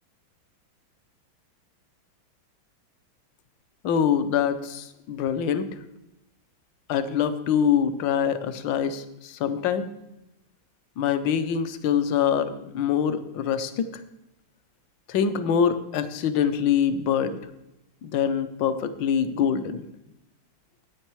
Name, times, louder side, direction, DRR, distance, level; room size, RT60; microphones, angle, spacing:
voice 1, 3.8-5.7 6.9-9.9 11.0-13.9 15.1-17.3 18.0-19.8, left 8 dB, 70° left, 11 dB, 1.4 m, -24 dB
9.9 x 8.8 x 4.6 m, 0.90 s
omnidirectional pair, 2.2 m